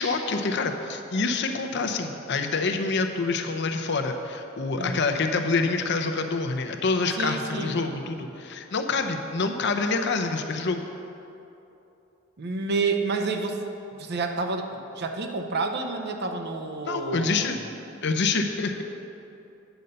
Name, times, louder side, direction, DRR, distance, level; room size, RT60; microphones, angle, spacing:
voice 1, 0.0-10.8 16.8-17.6 18.0-18.8, left 4 dB, 60° left, 5 dB, 0.7 m, -26 dB
voice 2, 4.8-5.1 7.2-7.8 12.4-13.6 13.9-17.6, right 3 dB, 55° right, 5 dB, 0.7 m, -29 dB
9.0 x 5.3 x 6.7 m, 2.9 s
head